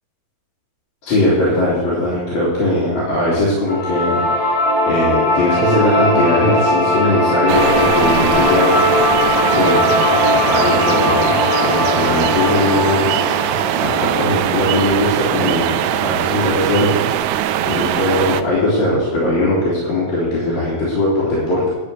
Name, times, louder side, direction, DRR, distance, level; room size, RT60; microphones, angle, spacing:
voice 1, 1.0-4.5 4.9-8.8 9.5-9.8 10.5-11.3 11.6-13.0 13.3-13.5 13.8-17.0 17.7-21.7, left 1 dB, 75° left, -9 dB, 4.2 m, -19 dB
sound 1, 3.7-14.8, left 1 dB, 50° left, 2.8 m, -18 dB
sound 2, 7.5-18.4, right 11 dB, 85° right, 2.0 m, -20 dB
11.5 x 5.1 x 8.4 m, 1.2 s
omnidirectional pair, 3.3 m